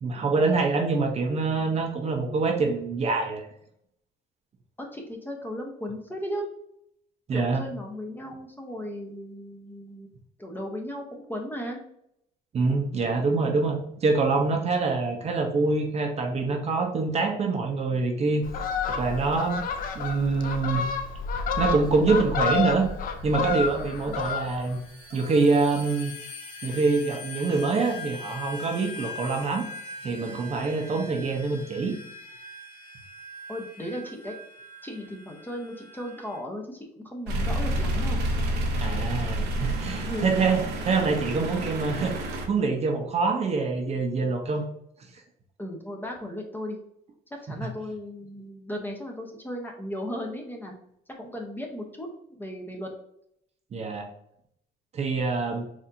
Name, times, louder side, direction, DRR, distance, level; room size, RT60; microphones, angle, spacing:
voice 1, 0.0-3.4 7.3-7.6 12.5-18.4 19.0-19.6 19.9-20.8 21.6-22.9 23.2-24.8 25.1-26.1 26.6-29.6 30.0-31.9 38.8-42.1 42.5-44.7 47.6-47.7 53.7-54.1 54.9-55.6, right 4 dB, 40° right, 3 dB, 0.6 m, -25 dB
voice 2, 4.8-6.5 7.3-10.1 10.4-11.8 24.1-24.2 33.5-34.3 34.8-38.2 40.1-40.4 45.6-46.8 47.4-50.7 51.2-52.1 52.4-52.9, equal, 10° left, 1 dB, 0.7 m, -36 dB
Fowl, 18.4-24.8 25.1-25.4, left 5 dB, 55° left, 0.5 m, -30 dB
sound 1, 21.3-36.4, left 2 dB, 30° left, 1.4 m, -43 dB
sound 2, 37.3-42.5, equal, 90° right, 0.7 m, -29 dB
4.2 x 2.6 x 2.5 m, 0.71 s
cardioid pair, 110°, 17 cm